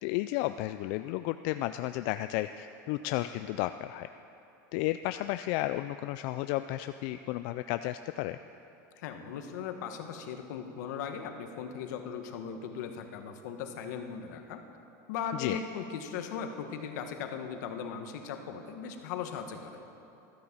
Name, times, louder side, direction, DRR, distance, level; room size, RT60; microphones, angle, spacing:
voice 1, 0.0-4.1 4.7-8.4 15.3-15.6, left 16 dB, 55° left, 10 dB, 0.3 m, -33 dB
voice 2, 8.9-14.6 15.1-19.8, left 7 dB, 75° left, 6 dB, 1.3 m, -38 dB
13.5 x 10.5 x 7.3 m, 2.8 s
supercardioid pair, 155°, 9 cm